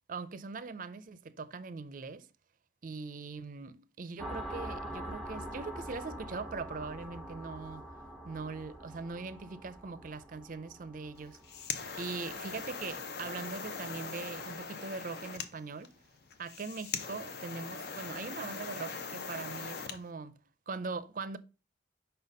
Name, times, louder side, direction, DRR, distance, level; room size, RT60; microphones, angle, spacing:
voice 1, 0.1-2.3 2.8-7.9 8.2-11.4 11.9-15.9 16.4-20.4 20.7-21.4, right 4 dB, 45° right, 0.5 m, -41 dB
sound 1, 4.2-13.5, right 1 dB, ahead, 1.1 m, -45 dB
sound 2, 11.2-20.0, left 5 dB, 60° left, 0.8 m, -41 dB
5.5 x 4.0 x 5.4 m
head